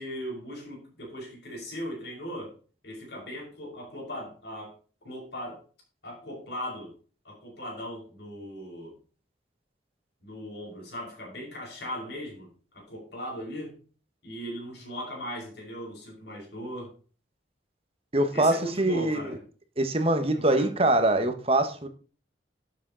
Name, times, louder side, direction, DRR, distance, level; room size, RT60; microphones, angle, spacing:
voice 1, 0.0-2.5 2.8-4.7 5.0-5.6 6.0-7.0 7.2-9.0 10.2-12.5 12.7-13.8 14.2-17.0 18.3-19.4 20.3-20.7, equal, 60° left, 6.2 m, -38 dB
voice 2, 18.1-19.4 19.8-21.9, right 1 dB, 30° right, 1.5 m, -24 dB
12.0 x 7.5 x 4.1 m
head